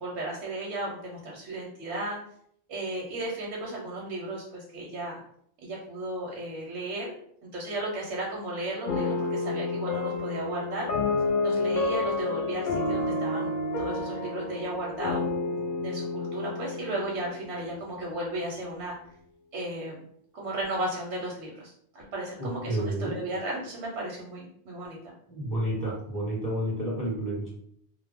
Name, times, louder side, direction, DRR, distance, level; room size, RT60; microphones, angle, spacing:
voice 1, 0.0-2.2 2.7-5.2 5.6-7.1 7.4-10.9 11.4-13.5 13.8-15.2 15.8-19.0 19.5-20.0 20.3-25.0, right 1 dB, 85° right, -2 dB, 0.9 m, -34 dB
sound 1, 8.9-18.0, left 3 dB, 55° left, 0.6 m, -30 dB
voice 2, 22.4-23.2 25.3-27.5, right 1 dB, 20° left, -6 dB, 0.8 m, -30 dB
2.1 x 2.0 x 3.3 m, 0.67 s
omnidirectional pair, 1.1 m